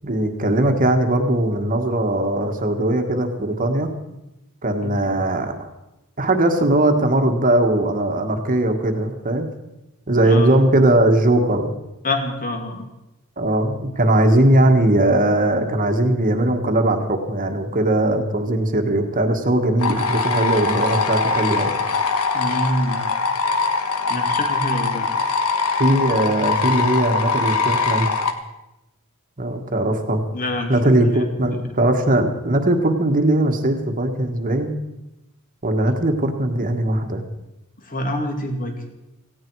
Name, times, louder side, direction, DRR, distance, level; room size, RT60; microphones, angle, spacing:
voice 1, 0.0-3.9 4.6-5.7 6.2-9.5 10.1-11.7 13.4-21.7 25.8-28.1 29.4-30.2 30.7-34.7 35.6-37.2, right 1 dB, 40° right, 5 dB, 1.5 m, -19 dB
voice 2, 4.8-5.2 10.2-10.6 12.0-12.8 22.3-23.1 24.1-25.1 30.3-30.8 31.1-31.2 31.5-31.6 37.8-38.7, left 1 dB, 40° left, 4 dB, 2.4 m, -26 dB
sound 1, 19.8-28.3, left 4 dB, 80° left, 1.4 m, -22 dB
18.0 x 16.0 x 4.7 m, 0.95 s
head